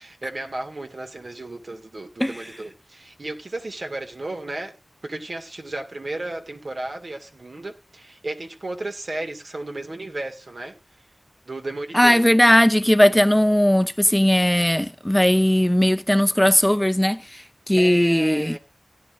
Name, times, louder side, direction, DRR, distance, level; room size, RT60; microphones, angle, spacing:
voice 1, 0.2-4.8 5.0-10.7 11.5-12.3 17.8-18.6, right 2 dB, 65° right, 2.0 m, -34 dB
voice 2, 11.9-18.6, equal, 10° left, 0.6 m, -18 dB
17.0 x 10.0 x 2.5 m
wide cardioid pair, 60°, 0 cm